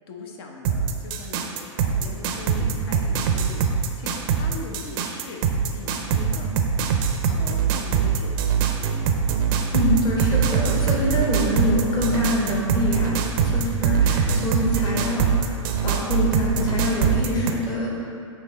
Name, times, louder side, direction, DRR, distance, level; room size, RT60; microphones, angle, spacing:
voice 1, 0.1-5.4 5.7-6.5 7.3-8.4 10.8-11.1, left 4 dB, 50° left, 2 dB, 0.7 m, -40 dB
sound 1, 0.7-17.5, right 6 dB, 40° right, 0.5 m, -23 dB
voice 2, 9.7-18.2, left 1 dB, 25° left, -4 dB, 1.1 m, -25 dB
8.2 x 3.1 x 4.0 m, 2.3 s
figure-of-eight pair, 110°, 17 cm